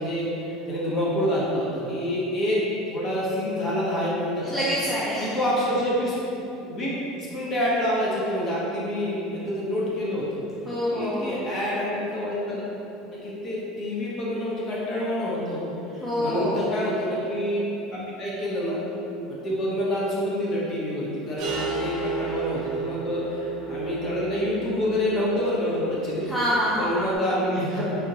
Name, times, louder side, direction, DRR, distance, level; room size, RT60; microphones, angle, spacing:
voice 1, 0.0-2.6 2.9-4.6 5.2-6.2 6.6-6.9 7.2-10.3 10.9-12.6 13.1-18.8 19.3-26.2 26.8-28.0, equal, 35° left, -6 dB, 0.9 m, -27 dB
voice 2, 4.5-5.4 10.6-11.5 16.0-16.6 26.2-27.1, equal, 10° left, -8 dB, 0.4 m, -26 dB
sound 1, 21.4-27.2, right 4 dB, 60° right, 0.7 m, -33 dB
3.4 x 2.8 x 2.7 m, 2.9 s
supercardioid pair, 135°, 0 cm